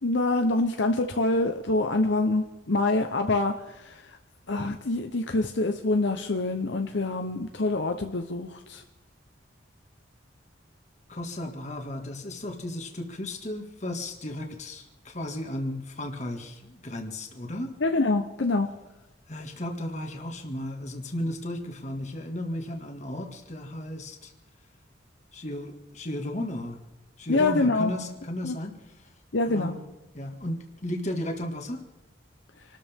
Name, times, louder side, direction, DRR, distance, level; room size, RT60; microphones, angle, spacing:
voice 1, 0.0-3.9 4.5-8.8 17.8-18.7 27.3-27.9 28.4-28.5 29.3-29.8, left 2 dB, 70° left, 5 dB, 0.9 m, -25 dB
voice 2, 11.1-17.7 19.3-24.3 25.3-26.8 27.2-28.7 29.4-29.8 30.1-31.8, left 1 dB, 40° left, 3 dB, 2.0 m, -34 dB
27.5 x 13.0 x 3.7 m, 0.99 s
head